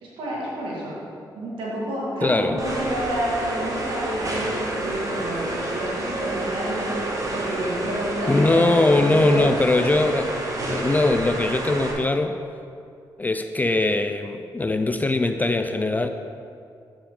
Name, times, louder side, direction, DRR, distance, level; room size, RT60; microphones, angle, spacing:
voice 1, 0.0-1.0 1.3-9.5 9.8-9.9, right 1 dB, 85° right, -5 dB, 1.8 m, -30 dB
voice 2, 2.2-2.6 8.3-10.3 10.7-12.4 13.2-16.1, left 2 dB, 20° left, 7 dB, 0.3 m, -21 dB
sound 1, 2.6-11.9, right 1 dB, 40° right, 1.5 m, -29 dB
7.1 x 6.8 x 3.7 m, 2.4 s
cardioid pair, 65°, 8 cm